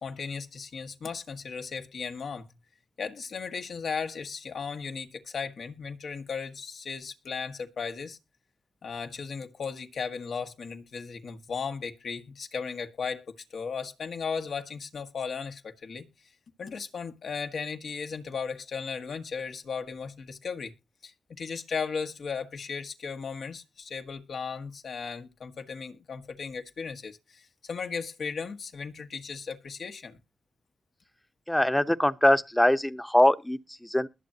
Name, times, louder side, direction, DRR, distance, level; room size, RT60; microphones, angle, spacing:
voice 1, 0.0-2.4 3.0-8.2 8.8-16.0 16.6-20.7 21.0-30.2, left 5 dB, 75° left, 1.6 m, -36 dB
voice 2, 31.5-34.1, left 1 dB, 10° left, 0.9 m, -23 dB
21.0 x 7.6 x 2.8 m
supercardioid pair, 45°, 0 cm